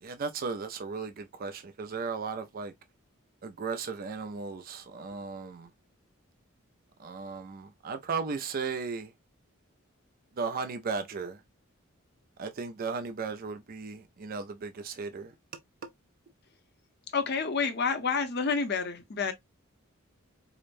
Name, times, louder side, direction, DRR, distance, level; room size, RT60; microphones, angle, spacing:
voice 1, 0.0-2.7 3.4-5.7 7.0-9.1 10.4-11.4 12.4-15.3, right 5 dB, 45° right, 0.4 m, -36 dB
voice 2, 17.1-19.3, left 5 dB, 55° left, 0.8 m, -29 dB
4.9 x 2.1 x 2.5 m
head